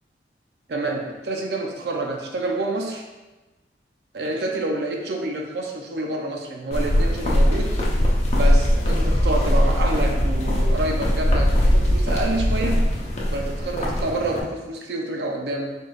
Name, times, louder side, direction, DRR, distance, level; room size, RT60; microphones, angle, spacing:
voice 1, 0.7-3.0 4.1-7.7 8.3-12.8 13.3-15.8, right 2 dB, 65° right, 1 dB, 0.5 m, -28 dB
sound 1, 6.7-14.4, equal, 40° left, 0.8 m, -20 dB
4.6 x 4.5 x 2.4 m, 1.1 s
head